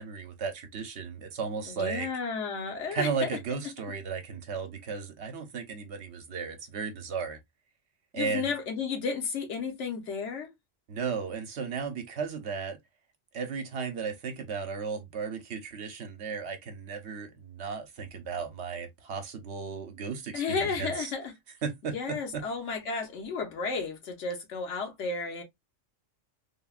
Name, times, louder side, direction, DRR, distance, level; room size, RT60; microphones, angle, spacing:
voice 1, 0.0-2.1 2.9-7.4 8.1-8.5 10.9-12.8 13.3-21.1 21.6-22.4, right 5 dB, 65° right, 0.9 m, -35 dB
voice 2, 1.7-3.4 8.1-10.5 20.3-21.3 21.9-25.4, left 5 dB, 70° left, 1.1 m, -33 dB
3.5 x 2.1 x 2.3 m
omnidirectional pair, 1.3 m